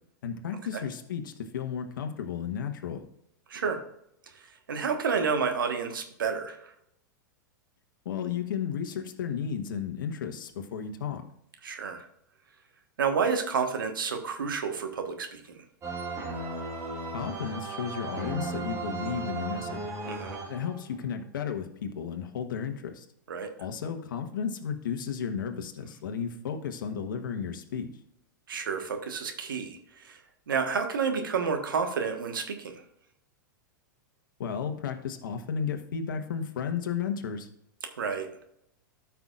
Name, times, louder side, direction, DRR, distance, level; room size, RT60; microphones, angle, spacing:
voice 1, 0.2-3.0 8.0-11.2 17.1-19.8 20.5-23.0 23.6-27.9 34.4-37.5, left 7 dB, 75° left, 5 dB, 1.2 m, -33 dB
voice 2, 3.5-3.8 4.7-6.7 11.6-12.1 13.0-15.4 20.0-20.4 23.3-23.5 28.5-30.2 30.5-32.8 38.0-38.3, right 5 dB, 85° right, 5 dB, 1.4 m, -30 dB
sound 1, 15.8-21.1, right 3 dB, 25° right, 2.4 m, -36 dB
13.0 x 5.8 x 2.5 m, 0.75 s
hypercardioid pair, 110°, 11 cm